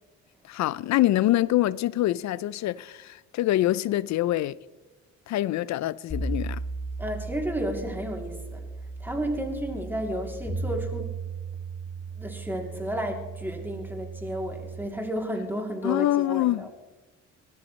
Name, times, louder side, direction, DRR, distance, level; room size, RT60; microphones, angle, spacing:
voice 1, 0.4-4.6 5.3-6.6 15.8-16.7, left 15 dB, 65° left, 0.4 m, -25 dB
sound 1, 6.1-14.8, right 3 dB, 20° left, 5.3 m, -36 dB
voice 2, 7.0-8.6 9.0-11.1 12.2-16.7, equal, 5° right, 2.9 m, -32 dB
19.5 x 13.0 x 3.2 m
cardioid pair, 90°, 30 cm